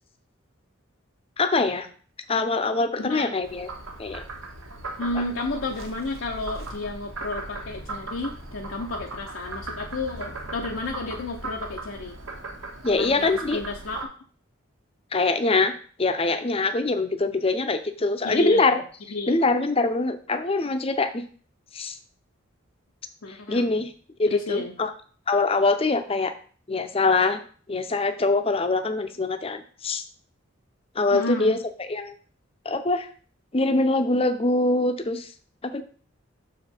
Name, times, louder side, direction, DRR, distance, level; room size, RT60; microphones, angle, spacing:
voice 1, 1.4-1.9 2.3-3.7 4.0-4.2 12.8-13.6 15.1-15.7 16.0-18.8 19.3-21.2 21.7-22.0 23.3-23.9 24.2-24.9 25.3-26.3 26.7-27.4 27.7-30.0 31.0-31.6 31.9-32.1 32.6-33.1 33.5-35.3 35.6-35.8, left 3 dB, 30° left, 8 dB, 0.6 m, -23 dB
voice 2, 3.0-3.4 5.0-12.1 13.0-14.0 18.2-18.8 19.1-19.3 23.2-23.8 24.3-24.7 31.1-31.6, left 2 dB, 75° left, 0 dB, 0.8 m, -31 dB
Frog, 3.4-14.0, right 2 dB, 85° right, 1.4 m, -38 dB
6.4 x 5.0 x 4.4 m, 0.43 s
head